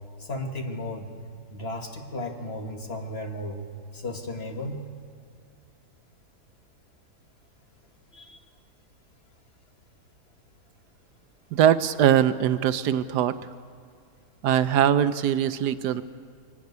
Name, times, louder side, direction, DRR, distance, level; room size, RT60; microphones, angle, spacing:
voice 1, 0.2-1.1 1.5-3.6 3.9-4.8 8.1-8.4, left 1 dB, 40° left, 3 dB, 1.6 m, -34 dB
voice 2, 11.5-13.4 14.4-16.0, right 10 dB, 80° right, 13 dB, 1.2 m, -21 dB
22.5 x 12.5 x 9.4 m, 2.3 s
omnidirectional pair, 1.8 m